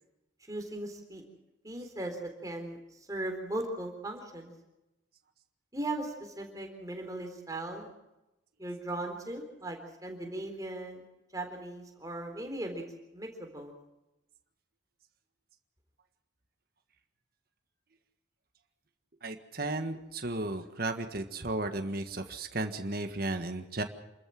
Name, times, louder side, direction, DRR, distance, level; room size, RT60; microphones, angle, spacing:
voice 1, 0.4-1.2 1.6-4.5 5.7-7.9 8.6-11.0 11.3-12.8 13.1-13.7, right 1 dB, 15° right, 3 dB, 3.9 m, -38 dB
voice 2, 19.2-23.8, right 2 dB, 50° right, 6 dB, 1.7 m, -34 dB
28.5 x 14.0 x 7.5 m, 0.96 s
head